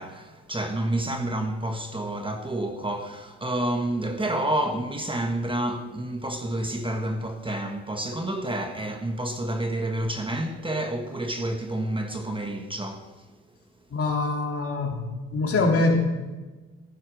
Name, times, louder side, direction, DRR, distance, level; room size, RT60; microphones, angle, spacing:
voice 1, 0.0-13.2, right 1 dB, 15° right, 1.3 m, -29 dB
voice 2, 13.9-15.0 15.3-16.0, left 2 dB, 50° left, 3.4 m, -23 dB
15.0 x 11.5 x 6.2 m
cardioid pair, 90°, 30 cm